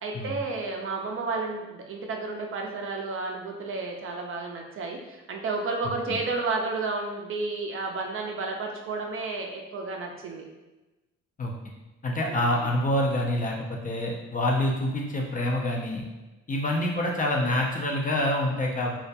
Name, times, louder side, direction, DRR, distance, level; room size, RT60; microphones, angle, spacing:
voice 1, 0.0-10.4 12.3-12.6, right 3 dB, 45° right, 2 dB, 0.4 m, -32 dB
voice 2, 12.0-16.0 16.5-18.9, left 1 dB, 30° left, -1 dB, 0.4 m, -26 dB
2.3 x 2.0 x 2.7 m, 1.1 s
cardioid pair, 90°, 30 cm